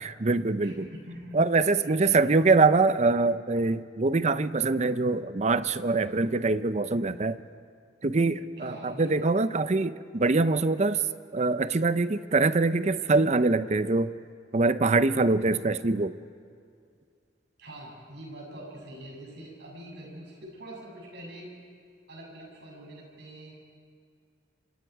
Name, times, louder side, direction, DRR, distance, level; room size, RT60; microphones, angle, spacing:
voice 1, 0.0-0.9 1.3-7.4 8.0-11.0 11.3-14.1 14.5-16.2, right 3 dB, 40° right, 13 dB, 0.6 m, -24 dB
voice 2, 0.6-1.4 1.8-2.3 8.6-9.2 17.6-21.5 22.1-23.5, right 1 dB, 65° right, -2 dB, 7.4 m, -44 dB
27.5 x 25.5 x 4.8 m, 2.3 s
head